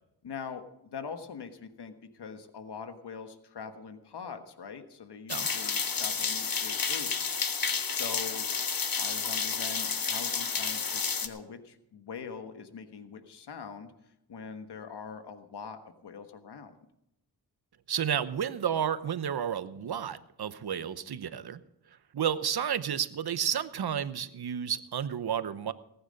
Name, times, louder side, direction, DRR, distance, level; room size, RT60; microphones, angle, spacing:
voice 1, 0.2-7.3 7.9-8.5 8.9-13.9 14.3-16.7, left 6 dB, 85° left, 8 dB, 1.4 m, -43 dB
sound 1, 5.3-11.3, left 5 dB, 60° left, 1.5 m, -30 dB
voice 2, 17.9-21.6 22.1-25.7, right 8 dB, 75° right, 14 dB, 0.9 m, -31 dB
19.0 x 9.4 x 5.3 m, 0.83 s
cardioid pair, 45°, 39 cm